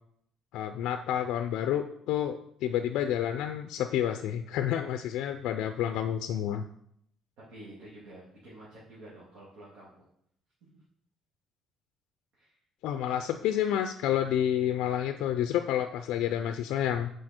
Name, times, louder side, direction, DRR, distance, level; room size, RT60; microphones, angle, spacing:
voice 1, 0.5-6.6 12.8-17.1, left 10 dB, 75° left, 8 dB, 0.4 m, -29 dB
voice 2, 7.5-10.1 12.4-12.6, right 1 dB, 80° right, -8 dB, 2.5 m, -49 dB
6.4 x 4.9 x 4.4 m, 0.72 s
cardioid pair, 135°, 0 cm